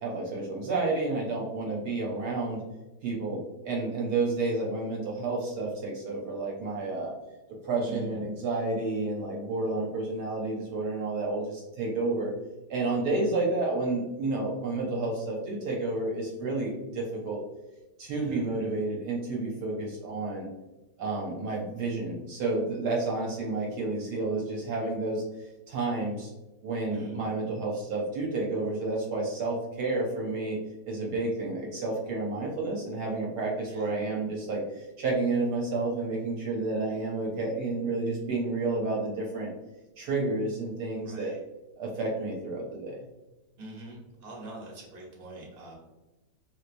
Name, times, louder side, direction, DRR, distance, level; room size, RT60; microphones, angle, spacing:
voice 1, 0.0-2.6 3.0-7.1 7.7-12.3 12.7-17.4 18.0-20.5 21.0-26.3 26.6-30.6 30.9-39.5 40.0-41.3 41.8-43.0, right 3 dB, 70° right, -2 dB, 1.1 m, -30 dB
voice 2, 7.8-8.2 18.1-18.4 26.9-27.2 33.7-34.0 41.0-41.4 43.6-45.7, right 2 dB, 40° right, -3 dB, 1.0 m, -43 dB
3.2 x 2.9 x 2.5 m, 1.1 s
omnidirectional pair, 1.9 m